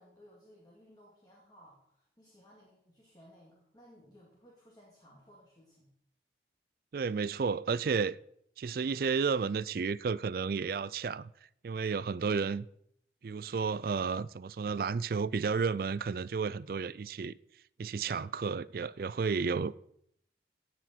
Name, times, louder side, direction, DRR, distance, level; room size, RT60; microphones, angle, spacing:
voice 1, 0.0-5.9, equal, 20° left, 2.3 m, -59 dB
voice 2, 6.9-8.2 8.6-11.3 11.6-12.7 13.2-17.3 17.8-19.7, right 5 dB, 50° right, 0.3 m, -32 dB
17.0 x 6.3 x 4.5 m
head